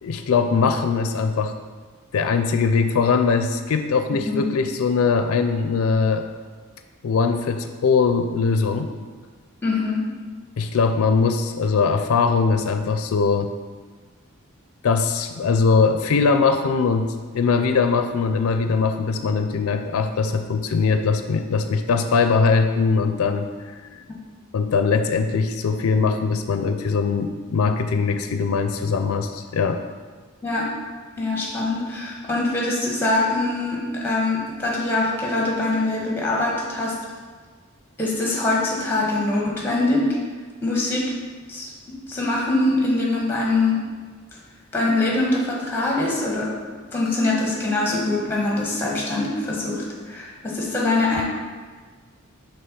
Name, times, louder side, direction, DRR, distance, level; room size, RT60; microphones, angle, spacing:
voice 1, 0.0-1.5 2.1-6.2 7.0-8.9 10.6-13.5 14.8-23.5 24.5-29.8, left 5 dB, 85° left, 7 dB, 0.4 m, -21 dB
voice 2, 9.6-10.0 30.4-30.7 31.2-37.0 38.0-40.1 40.6-41.1 41.5-41.7 42.1-43.8 44.7-46.5 46.9-51.2, left 2 dB, 10° left, -3 dB, 1.2 m, -23 dB
5.6 x 3.5 x 5.3 m, 1.5 s
head